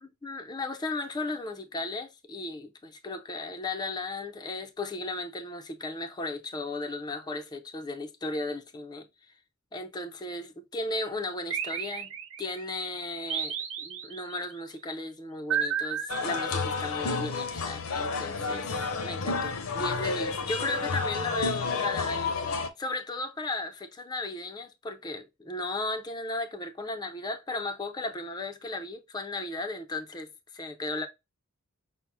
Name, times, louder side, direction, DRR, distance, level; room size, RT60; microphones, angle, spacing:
voice 1, 0.0-9.1 9.7-12.1 12.4-31.1, left 2 dB, 20° left, 0.4 m, -35 dB
sound 1, 11.5-12.6 13.3-14.4 15.5-17.0, right 7 dB, 65° right, 0.6 m, -33 dB
sound 2, 16.1-22.7, left 4 dB, 75° left, 0.7 m, -30 dB
5.9 x 2.0 x 3.4 m
head